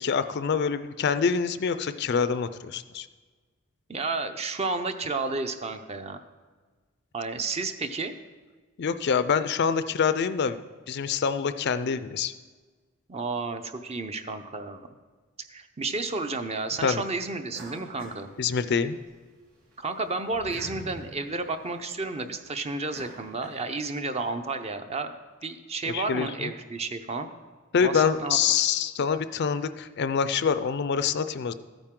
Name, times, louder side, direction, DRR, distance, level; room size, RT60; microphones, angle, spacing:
voice 1, 0.0-3.1 8.8-10.6 10.9-12.3 16.8-17.0 18.4-19.0 25.9-26.5 27.7-31.5, left 6 dB, 55° left, 12 dB, 0.4 m, -26 dB
voice 2, 3.9-6.2 7.1-8.1 13.1-14.8 15.5-18.3 19.8-25.1 25.4-27.3 27.8-28.4, right 3 dB, 30° right, 8 dB, 0.6 m, -31 dB
sound 1, 17.5-19.1 19.5-24.0, right 1 dB, 80° right, 3.2 m, -46 dB
13.5 x 9.0 x 3.7 m, 1.4 s
head